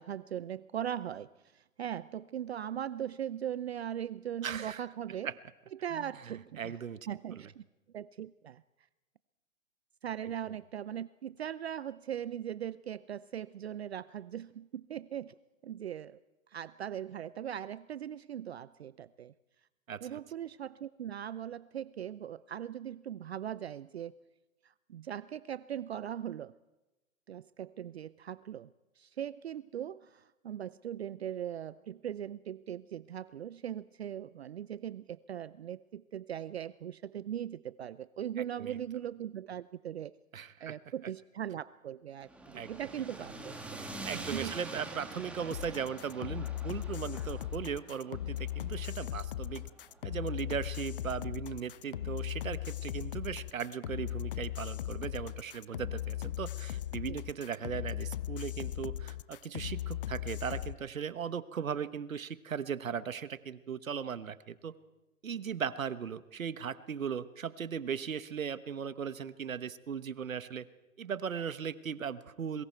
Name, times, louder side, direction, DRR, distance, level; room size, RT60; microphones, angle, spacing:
voice 1, 0.0-5.3 5.8-6.7 7.1-7.6 7.9-8.6 10.0-15.3 15.6-16.2 16.5-19.3 20.0-24.2 24.6-26.5 27.3-28.7 29.0-40.1 40.6-44.6 57.1-57.2, right 10 dB, 50° right, 18 dB, 0.6 m, -40 dB
voice 2, 4.4-4.8 5.2-5.3 5.9-6.1 6.6-7.4 19.9-20.2 38.6-38.7 40.3-40.8 42.5-42.7 44.0-49.6 50.0-64.7 65.2-70.6 71.0-72.6, right 7 dB, 70° right, 15 dB, 1.3 m, -38 dB
sound 1, 42.2-50.4, right 2 dB, 5° right, 1.9 m, -46 dB
sound 2, 45.5-60.7, left 12 dB, 40° left, 0.6 m, -38 dB
26.0 x 23.0 x 4.5 m, 1.0 s
hypercardioid pair, 140°, 41 cm